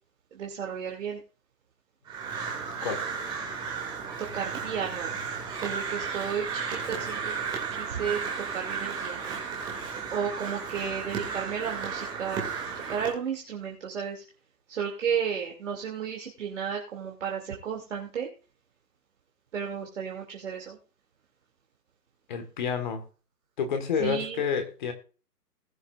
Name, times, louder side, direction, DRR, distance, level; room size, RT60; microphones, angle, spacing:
voice 1, 0.3-1.2 4.3-5.1 5.6-7.3 7.8-8.2 8.5-9.2 10.1-12.5 12.9-14.2 14.7-18.3 19.5-20.8 24.0-24.4, right 7 dB, 45° right, 0 dB, 2.7 m, -33 dB
Crow, 2.1-13.1, right 6 dB, 10° right, 2.2 m, -34 dB
voice 2, 22.3-23.0 23.6-24.9, left 6 dB, 30° left, 8 dB, 1.6 m, -29 dB
19.5 x 7.2 x 2.5 m, 0.36 s
hypercardioid pair, 155°, 48 cm